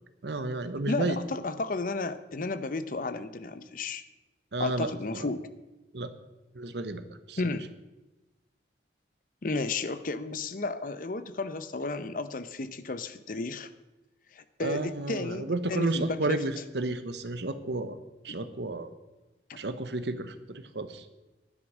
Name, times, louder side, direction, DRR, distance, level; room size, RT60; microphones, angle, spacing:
voice 1, 0.2-1.2 4.5-4.9 5.1-5.3 5.9-6.1 6.5-7.0 7.3-7.4 14.6-18.0 18.2-18.9 19.5-21.0, right 2 dB, 75° right, 11 dB, 1.0 m, -32 dB
voice 2, 0.9-4.0 4.6-5.5 7.4-7.7 9.4-13.7 14.3-16.4 18.4-18.5, left 3 dB, 50° left, 12 dB, 0.7 m, -33 dB
11.0 x 9.7 x 6.2 m, 1.1 s
head